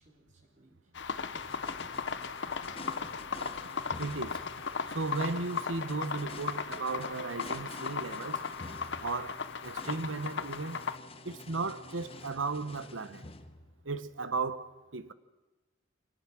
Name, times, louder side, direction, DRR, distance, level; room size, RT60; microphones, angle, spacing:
voice 1, 0.0-2.3, right 1 dB, 40° right, 4.2 m, -65 dB
sound 1, 0.9-11.0, left 5 dB, 60° left, 0.9 m, -37 dB
sound 2, 1.3-14.1, left 2 dB, 30° left, 1.1 m, -49 dB
voice 2, 4.0-4.4 4.9-8.5 9.0-10.8 11.2-13.3 13.8-15.1, right 3 dB, 80° right, 1.1 m, -35 dB
25.0 x 18.5 x 6.2 m
head